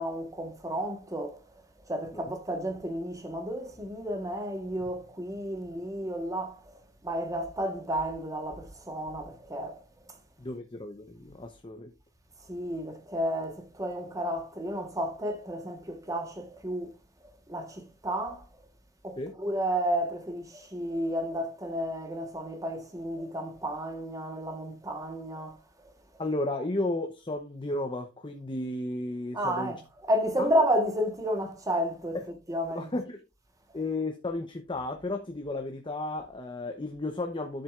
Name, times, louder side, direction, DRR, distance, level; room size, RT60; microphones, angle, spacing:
voice 1, 0.0-6.7 7.0-9.8 12.5-16.9 17.5-18.4 19.0-25.6 25.8-25.9 29.3-32.2 32.5-32.9, equal, 20° right, 1.3 m, -32 dB
voice 2, 10.4-11.9 19.2-19.3 26.2-29.7 30.4-30.5 32.7-33.2 33.7-37.6, left 2 dB, 25° left, 0.8 m, -33 dB
10.5 x 7.4 x 2.5 m
head